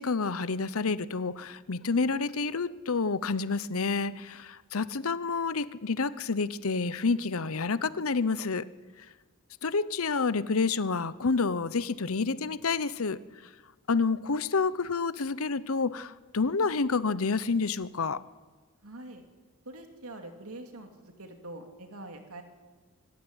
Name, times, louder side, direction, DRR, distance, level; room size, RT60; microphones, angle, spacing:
voice 1, 0.0-8.7 9.6-13.2 13.9-18.2, left 4 dB, 75° left, 16 dB, 0.9 m, -29 dB
voice 2, 18.8-19.2 19.6-22.4, right 2 dB, 90° right, 5 dB, 2.8 m, -44 dB
25.0 x 15.5 x 9.8 m, 1.3 s
head